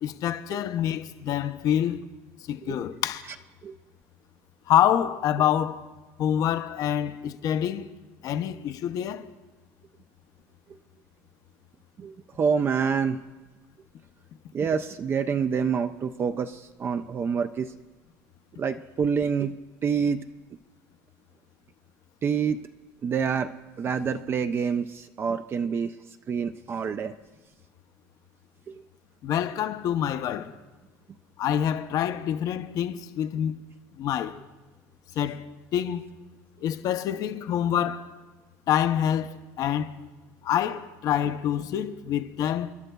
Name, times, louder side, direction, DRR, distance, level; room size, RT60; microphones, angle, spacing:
voice 1, 0.0-2.0 2.5-3.2 4.7-5.9 6.2-7.9 8.2-9.3 29.2-30.5 31.4-33.6 34.0-34.4 35.2-36.1 36.6-38.1 38.7-40.0 40.4-42.7, left 10 dB, 55° left, 0.6 m, -26 dB
voice 2, 12.0-13.2 14.5-17.7 18.6-20.3 22.2-22.6 23.0-26.0 26.3-27.1 28.7-28.8, right 6 dB, 30° right, 0.4 m, -27 dB
28.5 x 11.0 x 2.3 m
cardioid pair, 125°, 7 cm